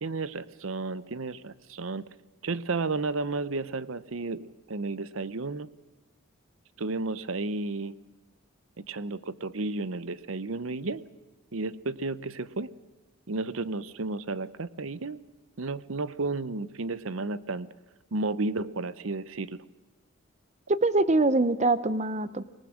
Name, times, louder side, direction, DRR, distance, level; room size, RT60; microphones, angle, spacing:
voice 1, 0.0-2.0 2.4-5.7 6.8-7.9 8.9-11.0 11.5-12.7 13.3-15.2 15.6-17.7 18.1-19.6, right 3 dB, 75° right, 16 dB, 0.8 m, -32 dB
voice 2, 20.7-22.4, right 2 dB, 35° right, 15 dB, 0.7 m, -24 dB
25.5 x 19.0 x 6.4 m, 1.1 s
head